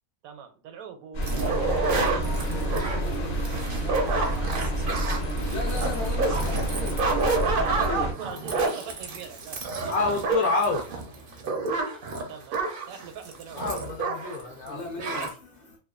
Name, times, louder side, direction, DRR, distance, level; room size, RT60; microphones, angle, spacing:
voice 1, 0.2-3.3 3.7-4.7 7.6-9.7 12.3-12.6 12.9-13.7, right 7 dB, 85° right, 1.1 m, -43 dB
sound 1, 1.1-8.1, right 1 dB, 45° left, 0.8 m, -29 dB
sound 2, 1.2-14.4 14.7-14.8 15.0-15.3, right 3 dB, 65° right, 0.5 m, -29 dB
voice 2, 3.6-4.1 4.9-8.1 9.8-9.9 11.2-11.4 14.4-15.8, left 3 dB, 65° left, 1.0 m, -38 dB
voice 3, 9.9-10.8 13.5-14.8, left 3 dB, 85° left, 1.1 m, -27 dB
2.8 x 2.2 x 2.3 m
omnidirectional pair, 1.5 m